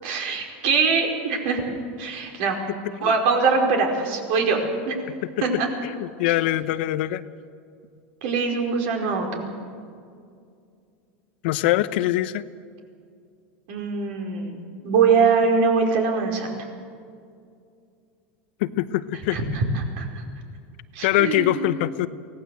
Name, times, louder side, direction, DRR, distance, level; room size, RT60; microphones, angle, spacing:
voice 1, 0.0-1.6 2.0-2.6 3.0-4.6 4.9-5.0 5.4-5.7 6.3-6.4 8.2-9.5 13.7-16.5 19.3-20.2 20.9-21.7, right 5 dB, 65° right, 2 dB, 5.0 m, -23 dB
voice 2, 5.8-7.2 11.4-12.4 18.6-19.4 21.0-22.1, left 15 dB, 70° left, 13 dB, 0.9 m, -23 dB
24.0 x 17.5 x 7.9 m, 2.3 s
supercardioid pair, 135°, 6 cm